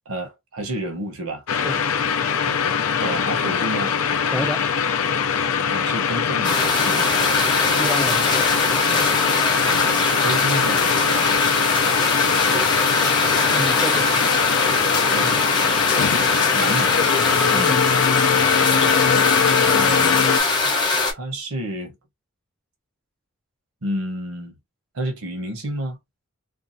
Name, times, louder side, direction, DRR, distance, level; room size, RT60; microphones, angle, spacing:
voice 1, 0.1-1.4 2.5-3.9 5.7-7.3 8.7-9.2 9.6-11.4 15.1-15.5 16.5-17.0 18.6-19.1 19.7-20.2 21.1-21.9 23.8-24.6 24.9-26.0, right 1 dB, 70° right, 0.9 m, -30 dB
sound 1, 1.5-20.4, left 7 dB, 65° left, 0.5 m, -22 dB
voice 2, 4.3-4.7 7.8-8.2 13.5-14.2 17.5-17.8, equal, 5° left, 0.3 m, -28 dB
sound 2, 6.4-21.1, left 3 dB, 20° left, 0.8 m, -22 dB
2.6 x 2.3 x 2.6 m
head